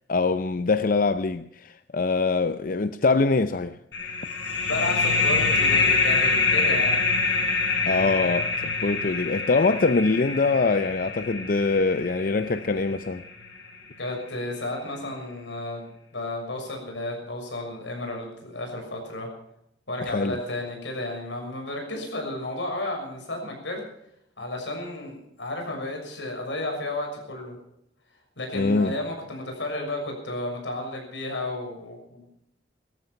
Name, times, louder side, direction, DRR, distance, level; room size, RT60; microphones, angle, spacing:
voice 1, 0.1-3.8 7.9-13.2 20.0-20.4 28.5-28.9, left 3 dB, 50° left, 0.6 m, -23 dB
sound 1, 3.9-13.2, left 4 dB, 70° left, 6.5 m, -25 dB
voice 2, 4.6-7.0 14.0-19.3 19.9-23.8 24.4-27.6 28.4-32.3, left 2 dB, 85° left, 6.5 m, -32 dB
18.0 x 13.5 x 5.8 m
head